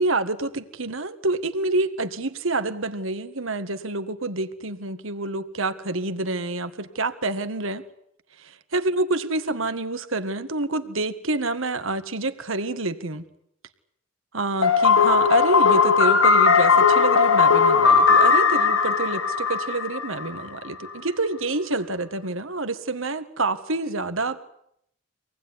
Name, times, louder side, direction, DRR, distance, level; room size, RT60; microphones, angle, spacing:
voice 1, 0.0-7.8 8.4-13.2 14.3-24.4, right 2 dB, 75° right, 10 dB, 1.9 m, -27 dB
sound 1, 14.6-20.5, left 5 dB, 80° left, 1.6 m, -18 dB
26.0 x 19.5 x 9.8 m, 0.74 s
head